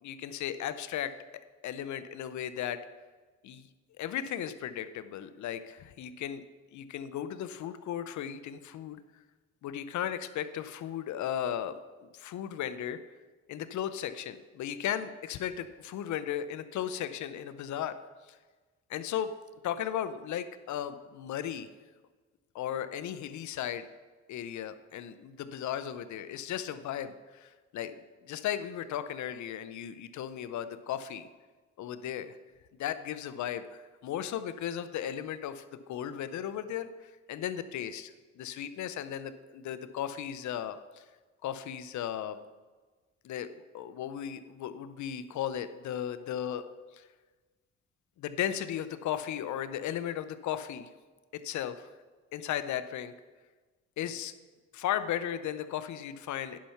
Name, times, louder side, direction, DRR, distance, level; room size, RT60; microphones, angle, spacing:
voice 1, 0.0-1.1 1.6-2.8 3.4-3.7 4.0-6.4 6.7-9.0 9.6-13.0 13.5-17.9 18.3-18.4 18.9-19.3 19.6-21.7 22.5-23.9 24.3-27.9 28.2-31.3 31.8-32.4 32.8-41.0 41.4-42.4 43.2-43.5 43.7-46.6 46.9-47.1 48.2-50.9 51.3-51.9 52.3-53.1 54.0-54.3 54.7-56.6, left 10 dB, 70° left, 12 dB, 0.7 m, -36 dB
10.5 x 5.8 x 5.7 m, 1.3 s
cardioid pair, 90°, 30 cm